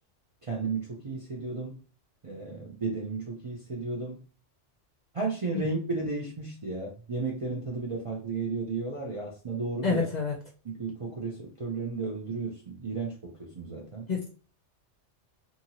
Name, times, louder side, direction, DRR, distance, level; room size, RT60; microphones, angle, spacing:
voice 1, 0.4-1.8 2.2-4.2 5.1-10.1 10.6-14.1, right 3 dB, 40° right, -4 dB, 0.5 m, -33 dB
voice 2, 9.8-10.3 14.1-14.3, left 5 dB, 50° left, 0 dB, 0.6 m, -28 dB
2.8 x 2.6 x 2.8 m, 0.37 s
omnidirectional pair, 1.2 m